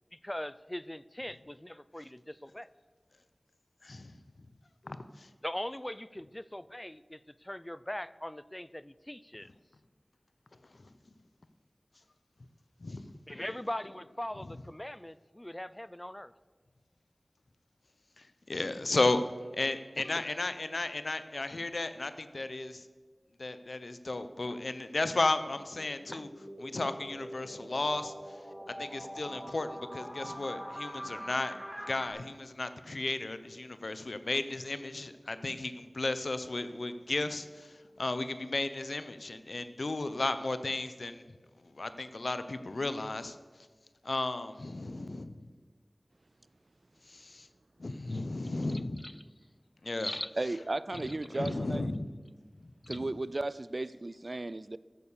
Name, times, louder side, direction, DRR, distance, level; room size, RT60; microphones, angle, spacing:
voice 1, 0.1-2.7 5.4-9.5 13.3-16.3 20.0-20.2 24.5-24.6 26.1-26.2 35.4-35.7 48.1-48.2 49.0-49.2 50.0-50.3 52.8-53.0, left 1 dB, 20° left, 0.3 m, -41 dB
voice 2, 3.8-4.1 4.8-5.3 12.8-13.1 13.3-13.4 18.2-19.2 19.5-22.9 23.4-26.3 26.6-28.1 28.8-31.5 31.9-41.2 41.7-43.4 44.0-45.4 47.1-47.5 47.8-49.0 49.8-50.1 51.3-52.1, left 2 dB, 80° left, 0.6 m, -34 dB
sound 1, 25.5-32.1, equal, 5° right, 2.3 m, -44 dB
voice 3, 50.4-51.8 52.9-54.8, right 2 dB, 55° right, 0.3 m, -35 dB
13.5 x 7.1 x 6.7 m
wide cardioid pair, 50°, 0 cm